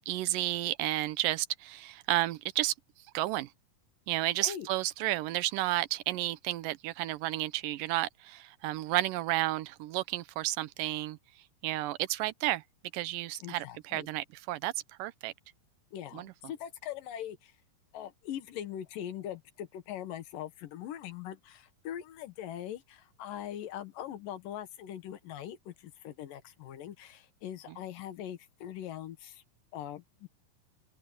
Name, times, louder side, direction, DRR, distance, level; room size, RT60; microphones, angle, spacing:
voice 1, 0.0-2.7 3.1-3.5 4.1-11.2 11.6-12.6 12.9-14.7 15.0-15.3 16.1-16.3, right 16 dB, 80° right, 2.4 m, -32 dB
voice 2, 13.4-14.1 15.9-17.5 17.9-29.4 29.7-30.3, left 11 dB, 75° left, 3.1 m, -41 dB
open air
omnidirectional pair, 4.0 m